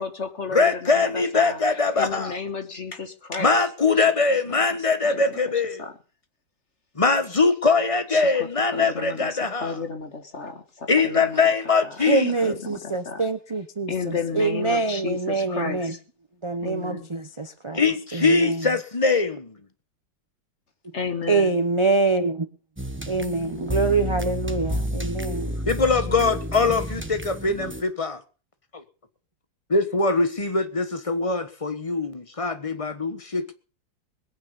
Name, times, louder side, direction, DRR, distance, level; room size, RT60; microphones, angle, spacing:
voice 1, 0.0-3.5 4.0-5.4 5.8-5.9 8.1-11.4 11.8-12.0 12.4-13.3 13.9-16.0 16.6-17.1 20.9-21.6, left 5 dB, 40° left, 1.7 m, -33 dB
voice 2, 0.5-2.3 3.4-5.8 7.0-9.7 10.9-12.3 17.7-19.5 25.7-28.2 28.7-28.8 29.7-33.5, left 4 dB, 20° left, 1.1 m, -22 dB
voice 3, 12.0-15.9 16.4-17.8 18.1-18.7 21.3-22.5 23.1-25.6, right 3 dB, 35° right, 0.5 m, -25 dB
sound 1, 22.8-27.8, equal, 10° right, 0.8 m, -30 dB
21.5 x 9.3 x 5.4 m
omnidirectional pair, 2.1 m